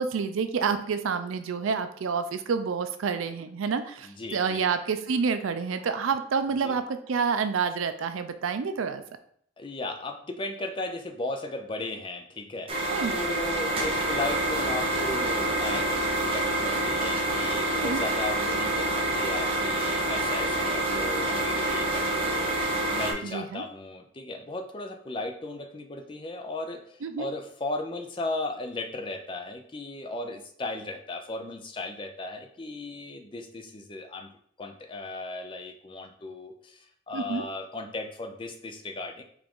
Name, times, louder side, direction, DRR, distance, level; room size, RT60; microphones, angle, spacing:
voice 1, 0.0-9.0 12.9-13.1 17.8-18.0 23.2-23.6 27.0-27.3 37.1-37.4, right 5 dB, 90° right, 10 dB, 0.4 m, -28 dB
voice 2, 4.0-4.6 6.6-6.7 9.6-12.7 13.1-34.3 34.6-39.2, left 2 dB, 25° left, 5 dB, 0.4 m, -36 dB
sound 1, 12.7-23.1, right 2 dB, 30° right, 0.7 m, -27 dB
4.8 x 2.5 x 3.6 m, 0.63 s
head